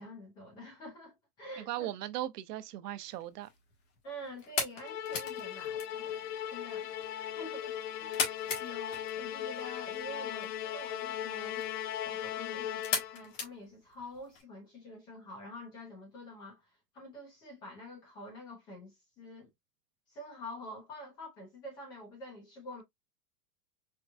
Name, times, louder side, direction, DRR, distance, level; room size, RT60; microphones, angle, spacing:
voice 1, 0.0-1.9 4.0-6.9 7.2-11.7 12.0-16.7 16.9-19.5 20.1-22.8, equal, 10° left, 0.4 m, -47 dB
voice 2, 1.7-3.5, right 13 dB, 85° right, 0.8 m, -38 dB
sound 1, 3.0-14.4, left 5 dB, 55° left, 1.5 m, -41 dB
Musical instrument, 4.8-13.3, left 10 dB, 90° left, 0.7 m, -38 dB
4.5 x 2.5 x 2.3 m
supercardioid pair, 175°, 46 cm